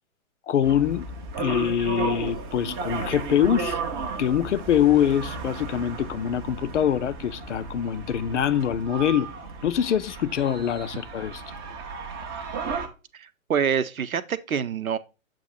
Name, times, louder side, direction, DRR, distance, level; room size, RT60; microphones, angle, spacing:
voice 1, 0.5-1.1 1.4-3.8 4.2-9.3 9.6-11.4, left 9 dB, 60° left, 0.5 m, -24 dB
sound 1, 0.6-12.9, right 4 dB, 20° right, 0.5 m, -34 dB
voice 2, 13.1-15.0, right 7 dB, 80° right, 0.7 m, -26 dB
7.4 x 2.5 x 5.7 m
figure-of-eight pair, 125°, 42 cm